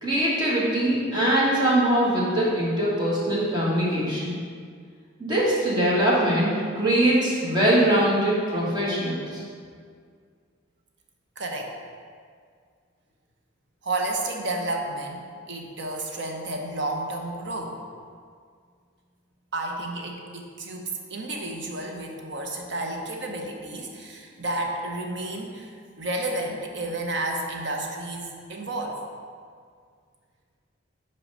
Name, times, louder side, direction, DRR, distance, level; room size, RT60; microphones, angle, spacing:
voice 1, 0.0-4.4 5.2-9.4, right 1 dB, 20° right, -6 dB, 1.5 m, -22 dB
voice 2, 11.4-11.7 13.8-17.8 19.5-29.0, right 2 dB, 55° right, 2 dB, 0.8 m, -31 dB
5.9 x 4.7 x 5.5 m, 2.1 s
head